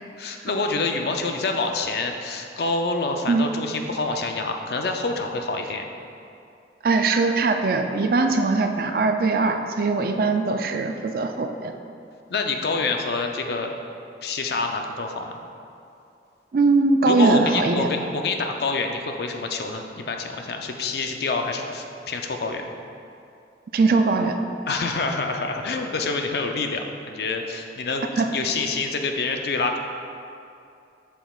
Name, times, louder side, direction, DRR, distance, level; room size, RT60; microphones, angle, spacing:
voice 1, 0.2-5.8 12.3-13.7 14.2-15.3 17.1-22.7 24.7-29.8, left 3 dB, 60° left, 4 dB, 0.5 m, -27 dB
voice 2, 6.8-11.7 16.5-17.9 23.7-24.4 28.2-28.3, right 3 dB, 55° right, 5 dB, 0.4 m, -21 dB
8.0 x 5.9 x 2.4 m, 2.6 s
head